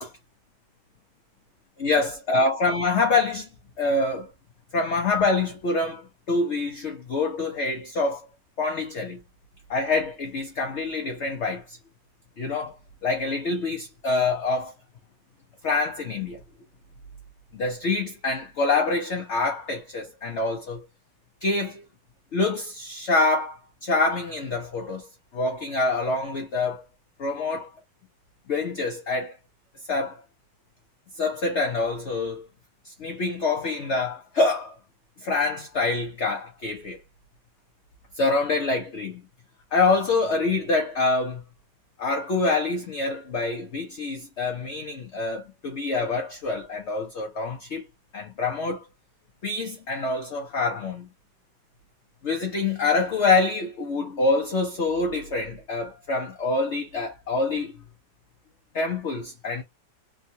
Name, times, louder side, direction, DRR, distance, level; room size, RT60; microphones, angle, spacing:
voice 1, 1.8-3.5 3.8-4.3 4.7-8.3 8.6-9.2 9.7-11.8 12.4-12.8 13.0-14.7 15.6-16.4 17.5-20.8 21.4-21.8 22.3-26.8 27.2-27.7 28.5-29.4 29.9-30.2 31.2-32.5 32.8-34.7 35.2-37.0 38.2-39.3 39.7-41.4 42.0-47.9 48.1-48.9 49.4-51.1 52.2-57.8 58.7-59.6, left 3 dB, 65° left, 0.6 m, -26 dB
3.6 x 2.3 x 2.6 m
omnidirectional pair, 2.0 m